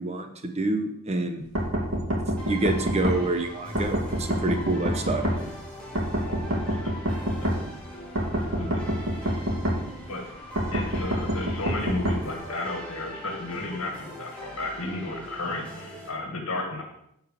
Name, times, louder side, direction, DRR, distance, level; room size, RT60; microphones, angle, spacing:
voice 1, 0.0-1.4 2.4-5.3, right 2 dB, 30° right, 6 dB, 1.1 m, -27 dB
sound 1, 1.6-3.2 3.8-5.4 6.0-7.6 8.2-9.8 10.6-12.2, equal, 70° right, 2.4 m, -26 dB
sound 2, 2.4-16.1, left 1 dB, 5° left, 2.7 m, -42 dB
voice 2, 6.3-7.5 8.5-8.9 10.1-16.8, left 2 dB, 90° left, 1 dB, 1.9 m, -34 dB
10.5 x 4.7 x 7.4 m, 0.76 s
head